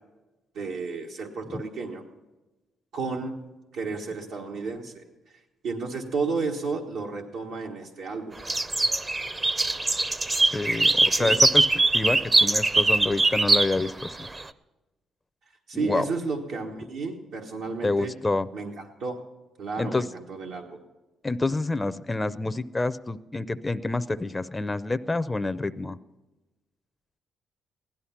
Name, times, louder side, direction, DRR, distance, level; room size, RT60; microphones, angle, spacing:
voice 1, 0.5-2.0 2.9-3.3 3.7-5.0 5.6-8.4 11.2-11.3 15.7-18.1 18.5-18.7 19.0-19.1 19.6-20.8, right 4 dB, 85° right, 0 dB, 1.4 m, -32 dB
sound 1, 8.5-14.4, right 2 dB, 25° right, 0.6 m, -22 dB
voice 2, 10.5-14.3 15.7-16.0 17.8-18.5 19.8-20.0 21.2-26.0, left 2 dB, 15° left, 12 dB, 0.5 m, -28 dB
16.0 x 11.5 x 5.8 m, 1.1 s
cardioid pair, 90°, 0 cm